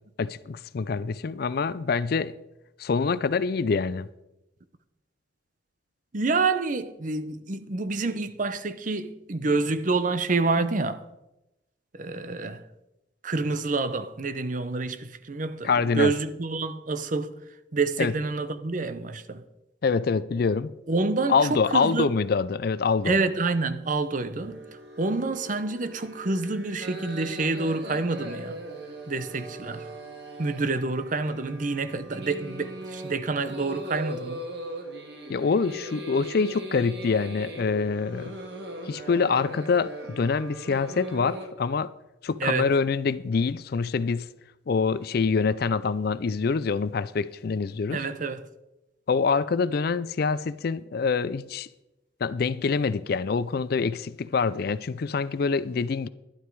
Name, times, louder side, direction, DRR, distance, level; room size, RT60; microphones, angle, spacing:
voice 1, 0.2-2.4 2.8-4.1 15.6-16.1 18.0-18.1 19.8-20.7 21.3-23.1 35.3-38.3 38.9-41.9 42.2-44.3 44.7-48.0 49.1-51.7 52.2-56.1, left 5 dB, 55° left, 0.4 m, -25 dB
voice 2, 6.1-11.0 11.9-12.6 13.2-17.3 17.7-19.4 20.9-22.1 23.1-24.6 25.0-28.6 29.1-29.9 30.4-34.4 42.4-42.7 47.9-48.5, right 3 dB, 45° right, 0.7 m, -28 dB
sound 1, 24.4-41.5, right 1 dB, 60° right, 1.8 m, -40 dB
11.5 x 11.5 x 4.6 m
head